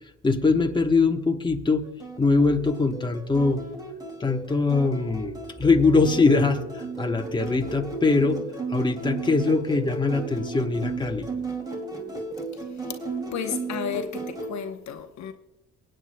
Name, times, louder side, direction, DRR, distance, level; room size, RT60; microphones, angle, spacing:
voice 1, 0.2-1.8 2.2-3.6 4.2-8.4 8.7-11.3, left 3 dB, 15° left, 1.0 m, -22 dB
sound 1, 2.0-14.5, right 3 dB, 15° right, 2.4 m, -35 dB
voice 2, 13.3-15.3, left 8 dB, 65° left, 0.9 m, -32 dB
23.5 x 9.0 x 2.2 m
cardioid pair, 90°, 30 cm